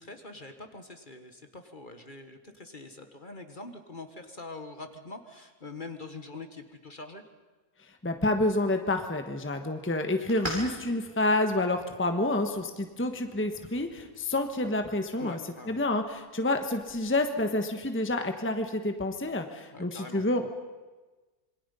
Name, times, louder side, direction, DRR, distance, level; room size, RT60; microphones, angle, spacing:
voice 1, 0.0-7.2 15.2-15.8 19.7-20.2, left 3 dB, 35° left, 7 dB, 1.6 m, -44 dB
voice 2, 8.0-15.4 15.7-20.5, left 2 dB, 10° left, 6 dB, 1.2 m, -28 dB
sound 1, 8.1-17.1, right 1 dB, 35° right, 5.0 m, -46 dB
26.5 x 23.5 x 5.6 m, 1.3 s
omnidirectional pair, 1.5 m